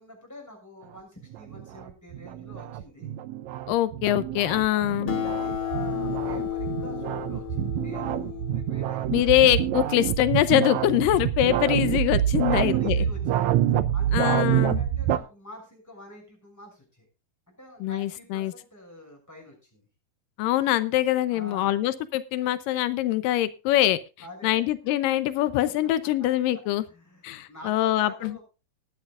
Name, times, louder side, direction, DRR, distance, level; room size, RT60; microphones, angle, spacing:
voice 1, 0.0-3.1 4.4-9.6 12.5-13.5 13.9-17.0 17.5-19.8 21.3-21.8 24.2-24.7 25.4-25.5 25.8-25.9 26.9-28.4, left 1 dB, 5° left, 0 dB, 6.1 m, -46 dB
sound 1, 1.2-15.2, right 11 dB, 75° right, 1.7 m, -27 dB
voice 2, 3.7-5.1 9.1-13.0 14.1-14.8 17.8-18.5 20.4-24.0 24.4-26.8 27.2-28.3, left 13 dB, 90° left, 14 dB, 2.4 m, -23 dB
Acoustic guitar, 5.1-9.9, left 11 dB, 45° left, 1.9 m, -33 dB
19.5 x 10.5 x 2.4 m, 0.31 s
omnidirectional pair, 3.8 m